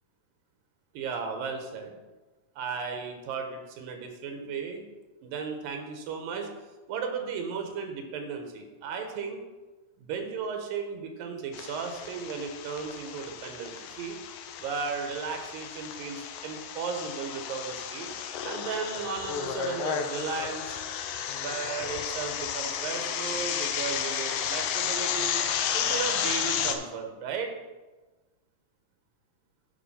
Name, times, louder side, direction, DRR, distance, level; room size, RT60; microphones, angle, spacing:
voice 1, 0.9-1.9 2.6-4.8 5.2-6.5 6.9-9.4 10.0-14.2 14.6-18.2 18.4-20.8 21.4-25.4 25.7-27.5, right 5 dB, 90° right, 4 dB, 2.8 m, -35 dB
sound 1, 11.5-26.8, left 8 dB, 85° left, 2.4 m, -32 dB
9.2 x 5.1 x 5.7 m, 1.2 s
omnidirectional pair, 4.0 m